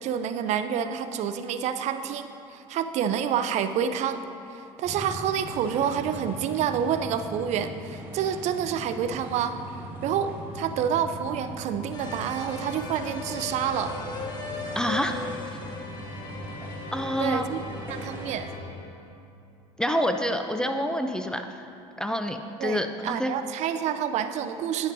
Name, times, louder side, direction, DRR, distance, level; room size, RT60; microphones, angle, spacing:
voice 1, 0.0-4.2 4.5-9.6 10.0-14.0 17.2-17.6 17.9-18.5 22.6-24.9, right 8 dB, 55° right, 9 dB, 0.5 m, -28 dB
sound 1, 4.8-18.4, equal, 15° right, 1.8 m, -40 dB
sound 2, 11.9-19.1, left 3 dB, 30° left, 1.2 m, -38 dB
voice 2, 14.8-15.2 16.9-17.5 19.8-21.7 22.0-23.3, equal, 5° left, 6 dB, 0.4 m, -27 dB
9.8 x 9.0 x 2.7 m, 2.7 s
supercardioid pair, 95°, 14 cm